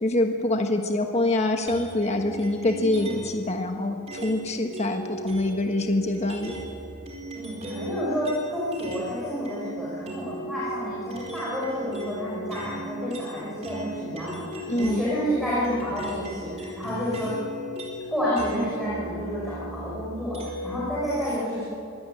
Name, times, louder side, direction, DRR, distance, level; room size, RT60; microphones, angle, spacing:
voice 1, 0.0-6.6 14.7-15.1, left 2 dB, 30° left, 4 dB, 1.3 m, -25 dB
sound 1, 1.7-3.4 4.1-9.1 9.4-20.9, right 1 dB, 30° right, 4.8 m, -37 dB
voice 2, 7.3-17.3 18.1-21.6, equal, ahead, -8 dB, 6.0 m, -30 dB
25.0 x 17.5 x 9.8 m, 2.6 s
head